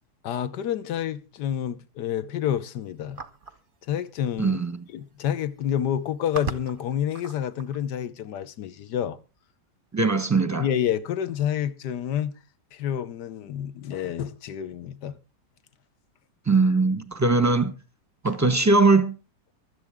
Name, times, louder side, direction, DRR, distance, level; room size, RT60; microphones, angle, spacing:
voice 1, 0.2-3.2 3.9-4.6 4.9-9.2 10.6-12.3 12.7-15.2, left 9 dB, 80° left, 1.5 m, -28 dB
sound 1, 3.2-3.6 4.7-4.8 5.0-5.4 6.0-7.8, right 5 dB, 40° right, 0.8 m, -37 dB
voice 2, 4.4-4.8 9.9-10.7 16.5-17.7 18.2-19.2, right 3 dB, 15° right, 0.9 m, -20 dB
24.0 x 8.1 x 3.6 m
omnidirectional pair, 1.8 m